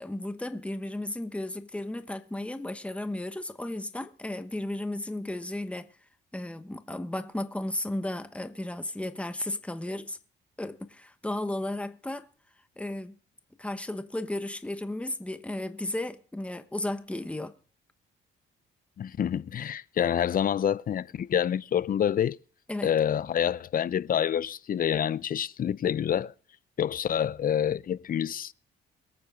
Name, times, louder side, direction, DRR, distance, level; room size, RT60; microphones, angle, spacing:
voice 1, 0.0-5.9 6.3-10.2 10.6-12.3 12.8-13.2 13.6-17.5 22.7-22.9, left 1 dB, 5° left, 1.1 m, -34 dB
voice 2, 19.0-22.4 22.8-26.3 26.8-28.5, left 9 dB, 45° left, 0.5 m, -27 dB
23.0 x 8.8 x 3.7 m
cardioid pair, 90°, 20 cm